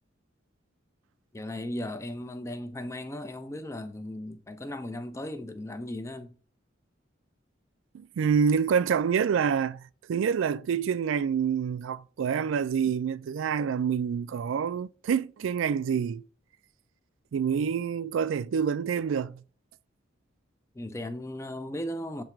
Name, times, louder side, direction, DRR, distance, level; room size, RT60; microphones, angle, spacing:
voice 1, 1.3-6.3 20.7-22.2, left 1 dB, 15° left, 0.5 m, -36 dB
voice 2, 7.9-9.8 10.1-16.2 17.3-19.4, right 7 dB, 90° right, 0.3 m, -27 dB
7.2 x 2.9 x 4.4 m
head